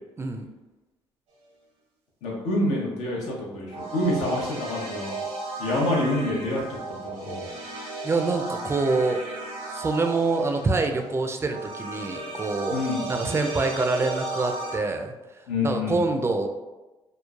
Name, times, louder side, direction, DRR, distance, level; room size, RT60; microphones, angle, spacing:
voice 1, 0.2-0.5 8.0-9.2 9.7-12.8 13.1-16.5, right 3 dB, 25° right, 5 dB, 0.4 m, -26 dB
voice 2, 2.2-5.1 5.6-6.8 7.0-7.5 12.7-13.1 15.5-16.0, left 2 dB, 85° left, -3 dB, 0.8 m, -27 dB
sound 1, 3.7-14.8, right 2 dB, 80° right, 0.8 m, -35 dB
3.0 x 2.0 x 2.3 m, 1.1 s
supercardioid pair, 70°, 11 cm